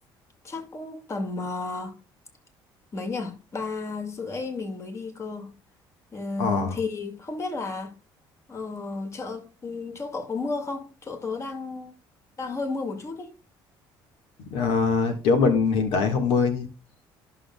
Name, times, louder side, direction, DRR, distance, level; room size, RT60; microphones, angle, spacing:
voice 1, 0.4-2.0 2.9-5.5 6.1-7.9 8.5-12.0 12.4-13.3, left 3 dB, 30° left, 2.0 m, -33 dB
voice 2, 6.4-6.8 14.5-16.7, left 5 dB, 80° left, 1.6 m, -22 dB
14.0 x 6.3 x 2.3 m
cardioid pair, 100°, 9 cm